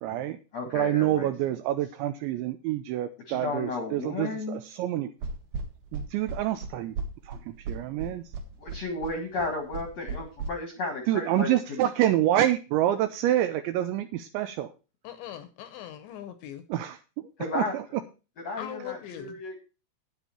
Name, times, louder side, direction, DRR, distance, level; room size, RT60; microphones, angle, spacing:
voice 1, 0.0-0.4 0.7-5.1 5.9-6.9 7.3-7.4 7.7-8.2 11.1-14.7 17.6-17.7, right 13 dB, 85° right, 10 dB, 2.7 m, -27 dB
voice 2, 0.5-1.3 3.3-4.6 8.6-11.8 17.4-18.0 18.4-19.6, left 3 dB, 55° left, 4 dB, 1.9 m, -33 dB
sound 1, 5.2-10.5, right 4 dB, 60° right, 3.0 m, -35 dB
voice 3, 15.0-16.6 18.6-19.4, left 11 dB, 75° left, 11 dB, 2.9 m, -40 dB
9.8 x 9.6 x 4.4 m, 0.32 s
omnidirectional pair, 5.9 m